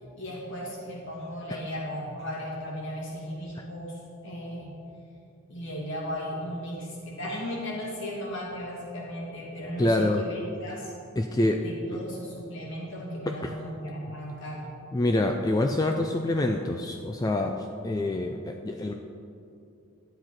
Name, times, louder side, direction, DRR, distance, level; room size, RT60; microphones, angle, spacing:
voice 1, 0.2-4.7 5.5-10.9 11.6-14.7, equal, 55° left, -4 dB, 2.4 m, -36 dB
voice 2, 9.8-10.2 11.2-11.6 13.4-13.5 14.9-18.9, left 1 dB, 15° left, 3 dB, 0.3 m, -26 dB
11.5 x 7.9 x 4.4 m, 2.6 s
head